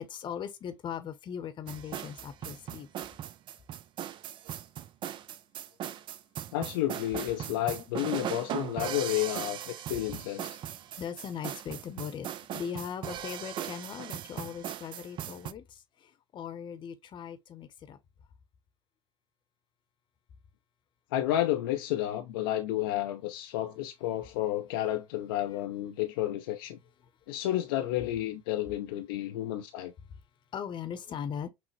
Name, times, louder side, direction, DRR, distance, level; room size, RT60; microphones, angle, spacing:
voice 1, 0.0-2.9 11.0-12.3 12.5-18.0 30.5-31.5, left 8 dB, 45° left, 0.8 m, -39 dB
sound 1, 1.7-15.5, right 10 dB, 45° right, 0.4 m, -39 dB
voice 2, 6.5-10.6 21.1-26.8 27.3-29.9, left 13 dB, 75° left, 0.5 m, -31 dB
5.8 x 2.1 x 3.1 m
hypercardioid pair, 70°, 12 cm